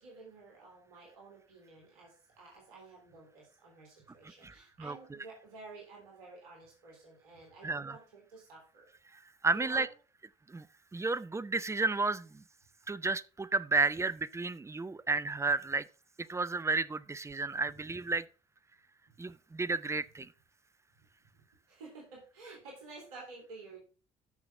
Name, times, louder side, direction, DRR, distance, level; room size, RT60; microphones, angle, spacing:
voice 1, 0.0-8.9 9.5-9.9 21.7-23.8, right 3 dB, 75° right, 3.3 m, -52 dB
voice 2, 4.4-5.0 7.6-8.0 9.4-9.9 10.5-10.7 10.9-12.4 12.9-15.9 16.3-18.2 19.2-20.3, right 3 dB, 15° right, 0.6 m, -32 dB
13.0 x 5.9 x 3.6 m
figure-of-eight pair, 50°, 19 cm